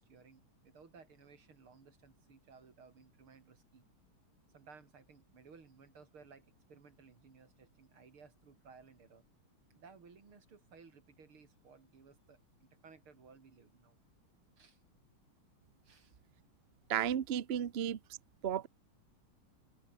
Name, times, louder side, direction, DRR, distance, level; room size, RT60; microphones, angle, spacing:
voice 1, 0.0-3.9 4.5-9.2 9.7-14.0 14.6-14.8 15.8-16.2, right 5 dB, 75° right, 4.1 m, -59 dB
voice 2, 16.9-18.0 18.4-18.7, right 9 dB, 60° right, 0.6 m, -33 dB
open air
omnidirectional pair, 2.4 m